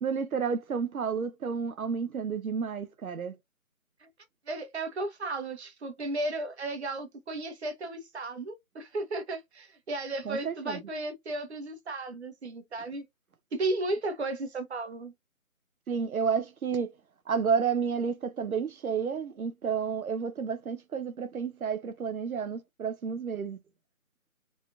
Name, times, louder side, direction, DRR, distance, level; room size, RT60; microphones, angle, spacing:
voice 1, 0.0-3.4 10.3-10.8 15.9-16.9 17.3-23.6, right 6 dB, 90° right, 0.7 m, -31 dB
voice 2, 4.5-13.0 13.5-15.1, right 2 dB, 50° right, 1.2 m, -34 dB
4.0 x 3.6 x 2.5 m
figure-of-eight pair, 155°, 41 cm